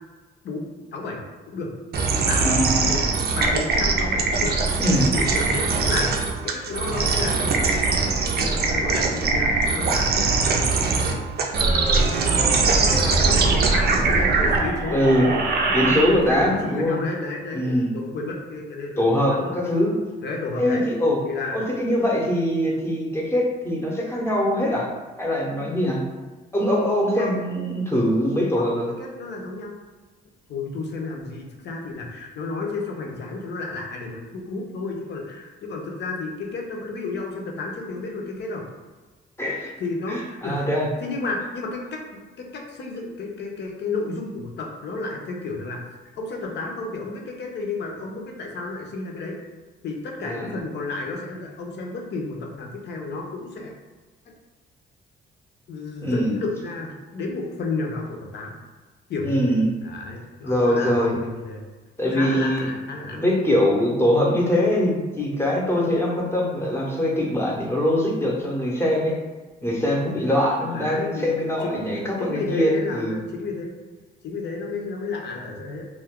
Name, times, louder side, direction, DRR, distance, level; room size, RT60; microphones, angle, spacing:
voice 1, 0.4-1.7 2.3-2.5 2.8-3.0 3.3-4.6 4.9-6.1 6.4-10.7 11.0-11.3 11.9-19.5 20.2-20.9 21.2-21.6 27.2-27.4 28.6-29.8 30.5-38.6 39.8-40.7 41.0-42.0 42.4-45.8 46.2-49.4 49.8-53.7 55.7-58.6 59.1-61.6 62.0-63.2 70.7-71.9 72.2-73.7 74.2-75.9, left 3 dB, 60° left, 0 dB, 0.7 m, -32 dB
sound 1, 1.9-16.5, right 4 dB, 55° right, 0.5 m, -22 dB
voice 2, 2.4-2.9 4.8-5.1 14.9-15.3 15.7-17.0 17.5-17.9 19.0-20.0 20.6-21.2 21.5-24.9 25.2-26.0 26.5-28.9 39.4-39.7 40.1-40.9 50.3-50.5 56.0-56.4 59.2-59.7 60.4-61.2 62.0-62.7 63.1-69.1 69.6-73.2, equal, 10° left, -3 dB, 0.8 m, -22 dB
2.5 x 2.3 x 3.5 m, 1.3 s
cardioid pair, 90°, 20 cm